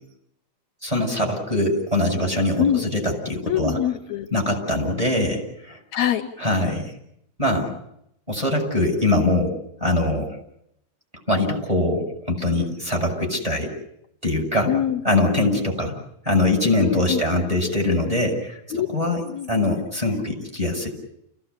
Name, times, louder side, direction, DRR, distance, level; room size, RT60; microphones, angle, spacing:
voice 1, 0.8-3.8 4.3-5.8 6.4-6.9 7.4-7.8 8.3-9.5 9.8-10.3 11.3-13.7 14.2-14.7 15.0-15.9 16.3-18.6 18.9-19.2 19.5-20.9, left 2 dB, 10° right, 1 dB, 6.8 m, -22 dB
voice 2, 3.5-4.3 5.9-6.2 14.7-15.0 15.4-15.6 16.8-17.2 18.7-18.9 19.2-19.5, left 10 dB, 70° left, 6 dB, 2.3 m, -23 dB
29.5 x 17.0 x 8.3 m, 0.78 s
omnidirectional pair, 3.4 m